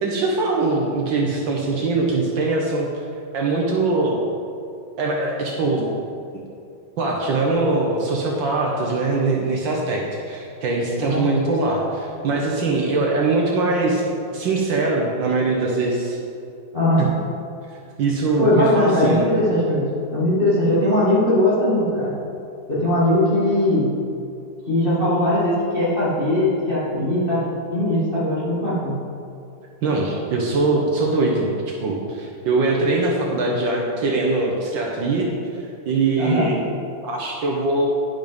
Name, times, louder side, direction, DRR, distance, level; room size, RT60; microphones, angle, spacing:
voice 1, 0.0-2.9 3.3-4.2 5.0-5.9 7.0-16.2 17.0-17.1 18.0-19.3 29.8-31.5 31.8-35.3 35.9-36.6 37.0-37.9, right 3 dB, 70° right, -1 dB, 1.6 m, -22 dB
voice 2, 18.4-22.1 22.7-23.9 24.7-27.4 27.7-28.9 36.2-36.5, left 1 dB, 25° left, -9 dB, 1.9 m, -20 dB
10.5 x 6.0 x 5.2 m, 2.6 s
omnidirectional pair, 2.2 m